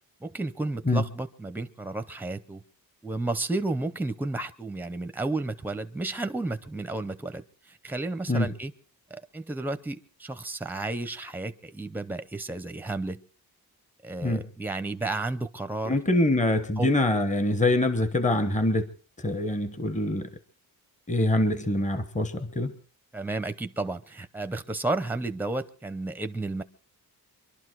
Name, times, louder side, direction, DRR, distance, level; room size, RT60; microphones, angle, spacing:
voice 1, 0.2-2.6 3.0-8.7 9.1-13.2 14.0-16.0 16.8-16.9 23.1-26.6, right 2 dB, 5° right, 11 dB, 0.7 m, -32 dB
voice 2, 15.8-18.9 19.2-20.3 21.1-22.7, left 1 dB, 20° left, 11 dB, 1.1 m, -24 dB
24.5 x 12.0 x 4.7 m, 0.43 s
wide cardioid pair, 155°, 39 cm